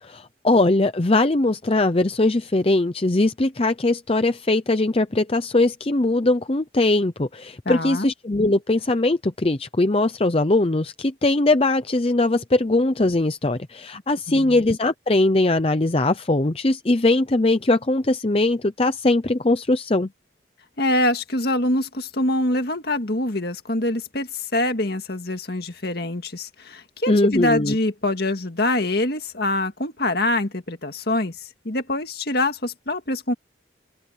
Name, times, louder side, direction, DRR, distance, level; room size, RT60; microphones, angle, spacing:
voice 1, 0.0-20.1 27.1-27.8, left 2 dB, 30° left, 0.6 m, -20 dB
voice 2, 7.7-8.1 14.3-14.6 20.8-33.3, left 1 dB, 55° left, 2.0 m, -24 dB
open air
head